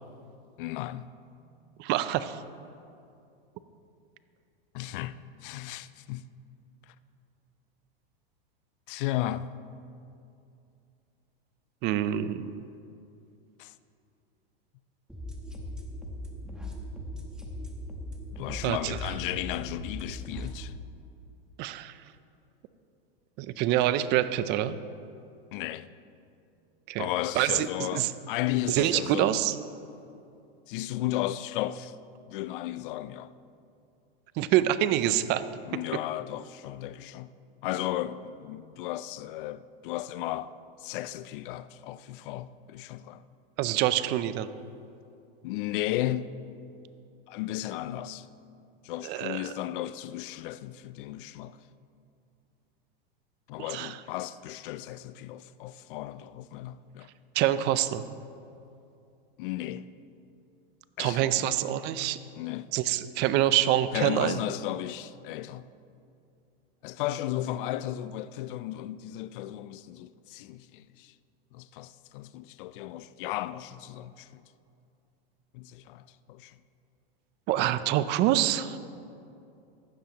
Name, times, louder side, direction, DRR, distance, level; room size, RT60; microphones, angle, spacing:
voice 1, 0.6-1.1 4.7-6.3 6.9-7.0 8.9-9.6 13.6-13.7 17.1-17.3 18.4-20.7 25.5-26.0 27.0-29.3 30.7-32.0 32.3-33.3 35.6-37.3 37.6-40.5 40.8-43.2 45.4-46.4 47.3-48.3 48.8-51.6 53.5-57.1 59.4-59.9 61.0-61.5 62.4-62.7 63.9-65.7 66.8-71.1 71.5-74.4 75.5-76.5, left 14 dB, 60° left, 0.5 m, -35 dB
voice 2, 1.8-2.4 11.8-12.6 18.6-19.0 21.6-21.9 23.4-24.8 26.9-27.1 27.4-28.1 28.7-29.6 34.4-35.4 43.6-44.5 49.0-49.5 53.7-54.0 57.3-58.0 61.0-62.2 62.7-64.4 77.5-78.8, right 12 dB, 35° right, 0.5 m, -26 dB
sound 1, 15.1-20.6, equal, ahead, 1.0 m, -39 dB
15.5 x 11.5 x 2.9 m
supercardioid pair, 130°, 30 cm